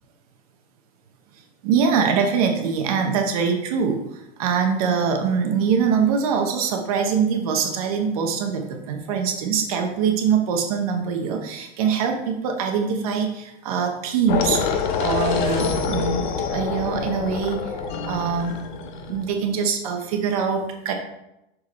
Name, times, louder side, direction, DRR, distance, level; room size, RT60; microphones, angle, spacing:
voice 1, 1.6-17.6 18.1-18.5 19.1-20.9, right 6 dB, 35° right, 4 dB, 0.8 m, -23 dB
sound 1, 14.3-19.4, left 6 dB, 50° left, 0.8 m, -26 dB
6.1 x 5.1 x 4.1 m, 0.87 s
supercardioid pair, 180°, 32 cm